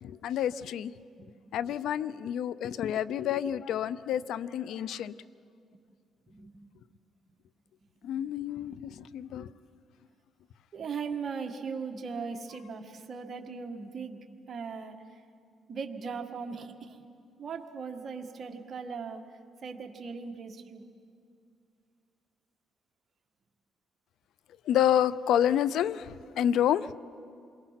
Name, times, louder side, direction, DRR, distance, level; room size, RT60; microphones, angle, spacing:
voice 1, 0.0-0.9 1.5-5.1 8.0-9.5 24.7-26.9, left 10 dB, 80° left, 18 dB, 0.5 m, -29 dB
voice 2, 10.7-15.1 15.7-17.0 17.4-19.2 19.6-20.9, right 5 dB, 50° right, 4 dB, 1.7 m, -39 dB
27.5 x 22.5 x 5.8 m, 2.3 s
cardioid pair, 90°, 0 cm